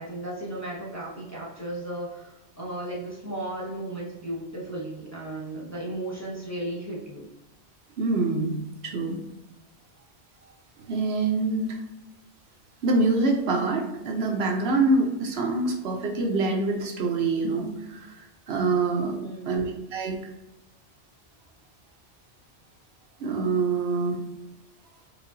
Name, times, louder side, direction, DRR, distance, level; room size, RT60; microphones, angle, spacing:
voice 1, 0.0-7.3 19.1-19.6, right 1 dB, 15° left, -7 dB, 0.8 m, -35 dB
voice 2, 8.0-8.6 8.8-9.2 10.9-11.8 12.8-18.1 18.5-19.2 19.4-20.2 23.2-24.2, right 3 dB, 70° right, 1 dB, 0.9 m, -25 dB
4.8 x 2.5 x 2.6 m, 1.0 s
omnidirectional pair, 1.1 m